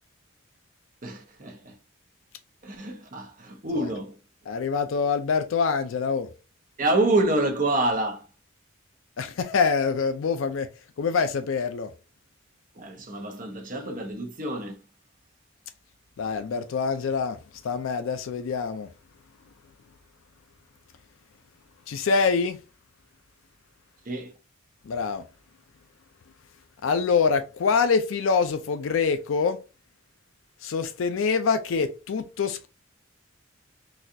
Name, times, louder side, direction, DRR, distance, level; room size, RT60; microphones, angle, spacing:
voice 1, 1.0-1.8 2.6-4.2 6.8-8.2 12.7-14.8 24.0-24.3, right 2 dB, 40° right, 0.8 m, -27 dB
voice 2, 4.5-6.3 9.2-10.7 11.0-11.9 16.2-18.9 21.9-22.6 24.8-25.3 26.8-29.6 30.6-32.7, left 5 dB, 80° left, 0.4 m, -25 dB
4.0 x 2.3 x 2.6 m
head